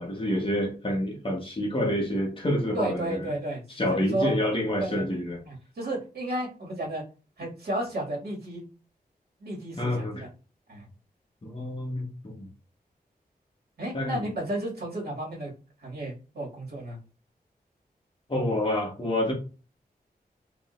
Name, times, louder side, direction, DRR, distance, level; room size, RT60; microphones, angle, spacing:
voice 1, 0.0-3.3 3.8-5.4 9.8-10.2 11.4-12.4 13.9-14.3 18.3-19.3, left 1 dB, 30° left, 1.4 m, -28 dB
voice 2, 2.7-3.6 3.9-4.4 4.8-5.0 5.5-7.0 7.4-8.7 9.4-10.3 10.7-10.9 13.8-15.5 15.8-17.0, right 1 dB, 75° right, 2.3 m, -32 dB
5.1 x 3.2 x 2.6 m
wide cardioid pair, 120°, 16 cm